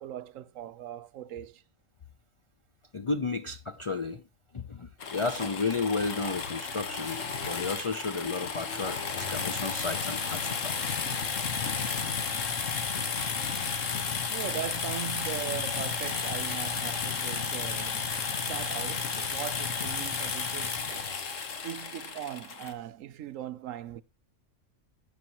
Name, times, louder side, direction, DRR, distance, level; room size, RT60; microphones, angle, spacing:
voice 1, 0.0-1.6 13.5-13.6 14.3-18.1 18.4-24.0, right 11 dB, 90° right, 1.1 m, -39 dB
voice 2, 2.9-4.2 4.5-11.0 12.5-12.6 13.2-13.8, left 3 dB, 50° left, 0.3 m, -33 dB
sound 1, 5.0-22.7, left 5 dB, 80° left, 1.7 m, -32 dB
12.5 x 8.0 x 2.9 m
omnidirectional pair, 1.3 m